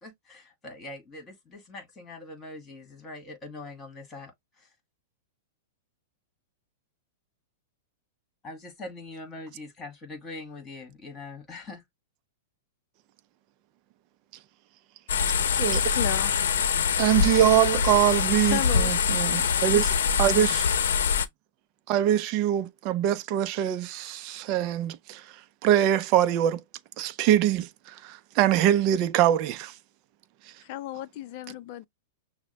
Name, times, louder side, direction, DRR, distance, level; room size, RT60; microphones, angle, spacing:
voice 1, 0.0-4.3 4.6-4.7 8.4-11.8, left 2 dB, 20° left, 2.1 m, -42 dB
sound 1, 15.1-21.3, left 6 dB, 80° left, 0.7 m, -24 dB
voice 2, 15.6-16.3 18.4-19.0 30.6-31.9, left 14 dB, 45° left, 0.5 m, -34 dB
voice 3, 17.0-19.9 20.2-20.7 21.9-25.2 25.6-26.6 27.0-29.7, right 11 dB, 40° right, 0.5 m, -23 dB
6.1 x 2.1 x 3.2 m
hypercardioid pair, 150°, 0 cm